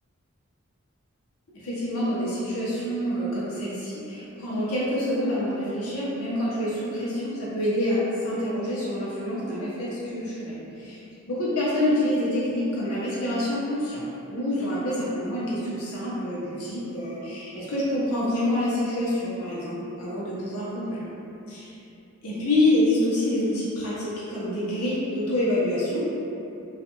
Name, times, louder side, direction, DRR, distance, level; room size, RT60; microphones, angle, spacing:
voice 1, 1.6-11.0 11.3-14.0 14.3-21.1 21.5-21.8 22.2-26.1, left 1 dB, 80° left, -8 dB, 0.8 m, -27 dB
2.4 x 2.3 x 2.8 m, 2.8 s
head